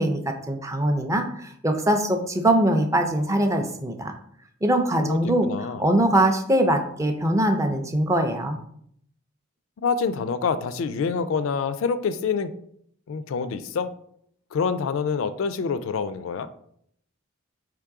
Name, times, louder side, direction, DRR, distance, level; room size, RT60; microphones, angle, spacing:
voice 1, 0.0-4.1 4.6-5.5 5.8-8.6, right 1 dB, 15° right, 5 dB, 0.4 m, -22 dB
voice 2, 5.0-5.8 9.8-12.5 13.1-13.9 14.5-16.5, left 5 dB, 65° left, 13 dB, 0.3 m, -26 dB
3.7 x 3.0 x 4.6 m, 0.67 s
head